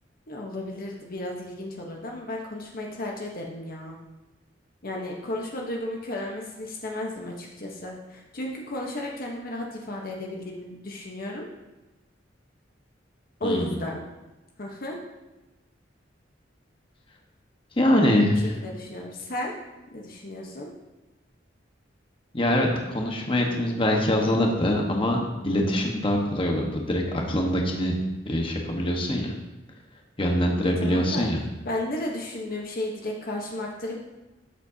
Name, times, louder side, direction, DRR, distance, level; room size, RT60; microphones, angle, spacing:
voice 1, 0.3-4.0 4.8-11.5 13.4-14.0 14.6-15.0 18.6-19.5 19.9-20.7 30.6-31.3 31.6-34.0, left 1 dB, 50° left, 0 dB, 1.1 m, -33 dB
voice 2, 13.4-13.8 17.8-18.5 22.3-28.0 28.2-29.3 30.2-31.4, left 1 dB, 30° left, 0 dB, 1.3 m, -24 dB
13.0 x 7.3 x 2.8 m, 1.1 s
head